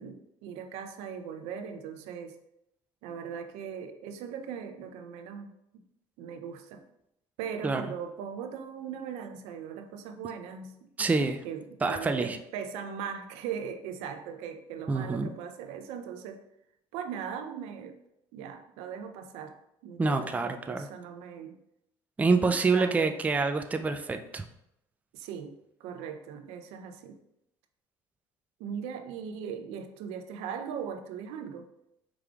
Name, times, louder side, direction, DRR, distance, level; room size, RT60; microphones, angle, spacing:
voice 1, 0.0-2.4 3.0-5.8 6.2-6.8 7.4-10.9 11.4-16.4 16.9-18.0 18.3-19.6 19.8-21.6 22.4-23.1 25.1-27.2 28.6-31.7, right 7 dB, 75° right, 7 dB, 0.5 m, -39 dB
voice 2, 11.0-11.4 11.8-12.4 14.9-15.3 20.0-20.9 22.2-24.4, right 4 dB, 15° right, 7 dB, 0.3 m, -27 dB
5.0 x 3.2 x 2.3 m, 0.80 s
supercardioid pair, 85°, 11 cm